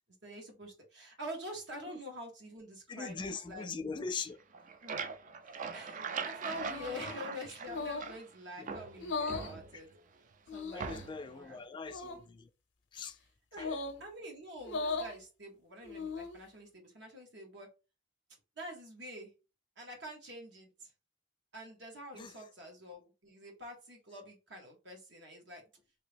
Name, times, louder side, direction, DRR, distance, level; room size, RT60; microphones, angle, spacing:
voice 1, 0.2-3.7 4.8-5.0 5.7-9.9 10.5-11.6 13.5-13.7 14.0-17.7 18.6-19.3 19.8-20.9 21.5-25.6, equal, 70° right, 1.4 m, -46 dB
voice 2, 2.9-4.4 6.8-7.2 8.6-8.7 9.7-9.8 10.7-12.5 12.9-13.2 13.6-13.8 22.1-22.3, left 4 dB, 25° left, 0.3 m, -41 dB
sound 1, 4.4-8.3 8.7-10.0 10.8-11.3, right 5 dB, 45° right, 0.4 m, -41 dB
sound 2, 6.6-7.0 7.7-8.2 9.0-9.5 10.5-11.0 11.8-12.2 13.6-14.0 14.6-15.2 15.8-16.4, left 3 dB, 90° left, 0.6 m, -38 dB
2.9 x 2.9 x 3.4 m
head